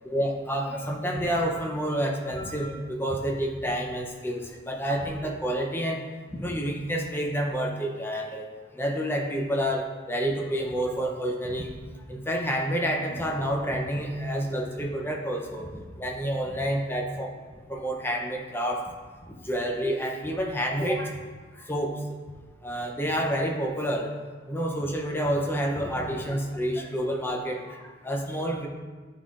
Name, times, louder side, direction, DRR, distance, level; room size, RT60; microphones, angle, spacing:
voice 1, 0.0-6.0 6.3-8.5 8.8-11.7 12.1-17.3 17.7-18.9 19.4-21.1 21.7-21.9 22.6-24.1 24.5-28.7, equal, 10° left, 1 dB, 0.5 m, -29 dB
10.5 x 3.7 x 2.4 m, 1.4 s
head